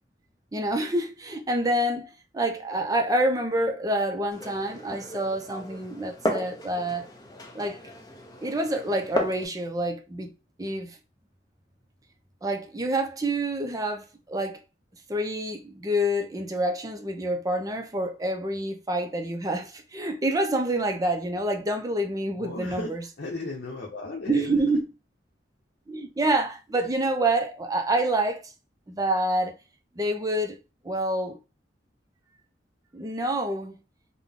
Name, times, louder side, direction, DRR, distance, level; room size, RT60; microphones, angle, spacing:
voice 1, 0.5-7.1 7.5-7.8 8.4-11.0 12.4-14.6 15.1-23.0 24.3-24.9 25.9-28.5 28.9-29.6 30.0-30.6 30.8-31.4 32.9-33.8, right 1 dB, 20° right, 0.5 m, -27 dB
Glass, 4.3-9.4, equal, 20° left, 0.7 m, -34 dB
voice 2, 22.3-22.9 23.2-24.6, left 2 dB, 65° left, 0.8 m, -35 dB
3.7 x 2.2 x 3.5 m
head